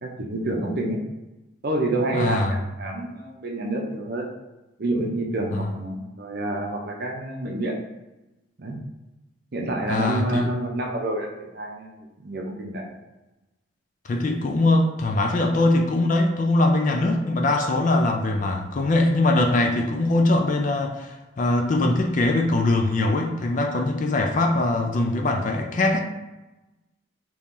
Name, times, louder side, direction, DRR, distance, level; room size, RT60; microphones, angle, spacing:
voice 1, 0.0-1.0 1.6-4.3 4.8-7.7 8.6-8.8 9.5-12.9, right 1 dB, 50° right, 0 dB, 0.6 m, -28 dB
voice 2, 2.1-2.6 5.5-5.6 9.9-10.5 14.0-26.0, left 2 dB, 40° left, 3 dB, 0.3 m, -22 dB
3.0 x 2.7 x 3.6 m, 1.0 s
head